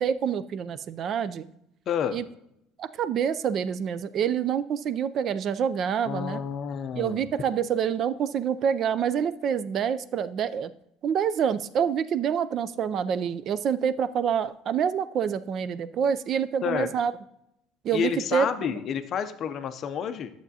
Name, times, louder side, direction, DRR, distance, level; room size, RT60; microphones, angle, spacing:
voice 1, 0.0-1.5 2.1-2.3 2.8-6.4 7.0-10.7 11.0-17.1 17.8-18.8, right 8 dB, 35° right, 15 dB, 0.3 m, -27 dB
voice 2, 1.9-2.2 6.0-7.3 16.6-16.9 17.9-20.3, left 8 dB, 35° left, 9 dB, 0.5 m, -29 dB
11.5 x 7.2 x 2.7 m, 0.80 s
cardioid pair, 175°, 0 cm